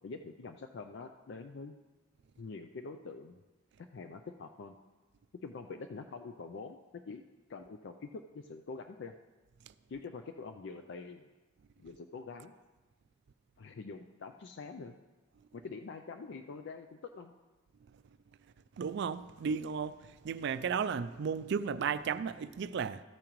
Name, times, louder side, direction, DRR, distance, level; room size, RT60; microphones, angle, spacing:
voice 1, 0.0-1.7 2.4-3.4 3.9-4.8 5.4-7.2 7.5-9.1 9.9-11.3 11.8-12.5 13.6-15.0 15.5-17.3, left 4 dB, 60° left, 0.4 m, -45 dB
voice 2, 18.8-23.0, right 6 dB, 60° right, 0.4 m, -34 dB
13.5 x 8.7 x 3.0 m
head